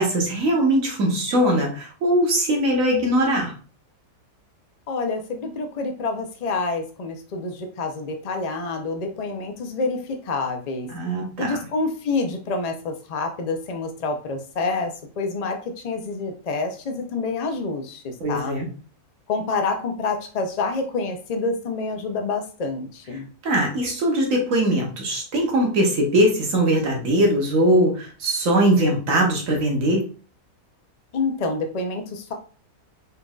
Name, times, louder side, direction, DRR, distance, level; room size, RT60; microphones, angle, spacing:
voice 1, 0.0-3.5 10.9-11.5 18.2-18.7 23.4-30.0, right 1 dB, 65° right, 0 dB, 1.5 m, -21 dB
voice 2, 4.9-10.9 11.4-15.6 15.8-18.6 19.3-23.3 31.1-32.3, left 3 dB, 80° left, 4 dB, 0.3 m, -27 dB
4.2 x 3.8 x 2.3 m, 0.39 s
omnidirectional pair, 1.6 m